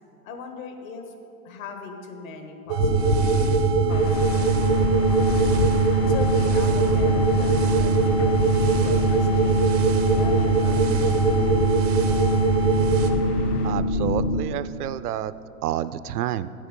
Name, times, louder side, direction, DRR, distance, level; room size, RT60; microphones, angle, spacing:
voice 1, 0.2-1.1 1.4-5.5 6.1-8.4 8.6-11.9, left 4 dB, 60° left, 5 dB, 1.5 m, -40 dB
sound 1, 2.7-13.1, right 6 dB, 30° right, 0.4 m, -22 dB
sound 2, 2.8-14.4, left 2 dB, 35° left, 0.8 m, -24 dB
sound 3, 3.9-13.7, left 6 dB, 85° left, 0.9 m, -40 dB
voice 2, 13.6-15.3 15.6-16.5, right 12 dB, 80° right, 15 dB, 0.5 m, -29 dB
8.9 x 8.4 x 5.4 m, 2.6 s
hypercardioid pair, 145°, 45 cm